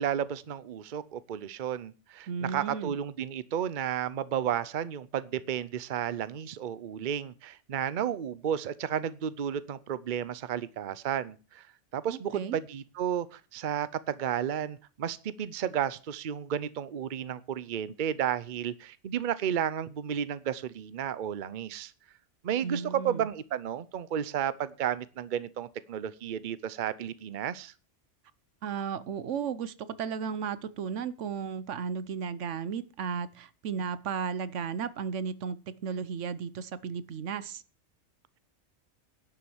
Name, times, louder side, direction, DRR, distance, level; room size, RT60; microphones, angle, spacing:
voice 1, 0.0-11.7 11.9-21.9 22.4-27.7, right 9 dB, 50° right, 0.8 m, -32 dB
voice 2, 2.3-2.9 12.1-12.6 22.6-23.3 28.6-37.6, right 6 dB, 85° right, 1.1 m, -34 dB
11.0 x 7.4 x 7.2 m
omnidirectional pair, 1.2 m